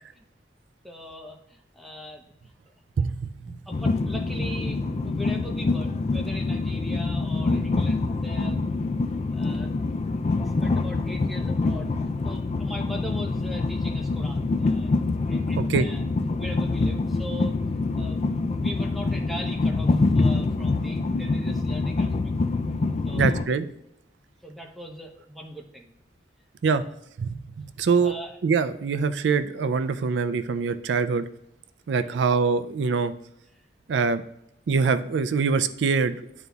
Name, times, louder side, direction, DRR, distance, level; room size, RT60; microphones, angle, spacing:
voice 1, 0.8-2.5 3.5-8.7 9.3-9.8 10.3-11.9 12.2-15.0 15.3-16.0 16.4-17.6 17.9-22.3 23.0-23.4 24.4-25.9 26.6-26.9 27.8-28.4 32.0-32.2, equal, ahead, 1 dB, 0.7 m, -40 dB
voice 2, 3.0-3.6 15.6-15.9 23.2-23.7 26.6-26.8 27.2-28.1 28.4-31.2 31.9-33.1 33.9-34.2 34.7-36.2, right 5 dB, 90° right, 12 dB, 0.4 m, -24 dB
Train, 3.7-23.4, left 3 dB, 35° left, 0.3 m, -25 dB
11.0 x 3.9 x 2.3 m, 0.79 s
head